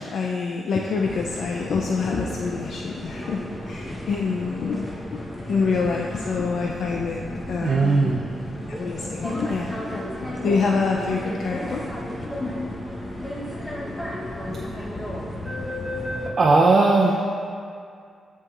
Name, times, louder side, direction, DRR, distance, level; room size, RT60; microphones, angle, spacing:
voice 1, 0.0-5.2 5.5-8.1 8.7-11.8 12.4-12.6, left 4 dB, 70° left, 0 dB, 0.4 m, -27 dB
sound 1, 1.0-16.3, left 1 dB, 15° left, 0.9 m, -33 dB
voice 2, 7.6-8.3 16.4-17.4, right 3 dB, 45° right, -2 dB, 0.5 m, -18 dB
10.5 x 4.6 x 2.4 m, 2.3 s
cardioid pair, 85°, 0 cm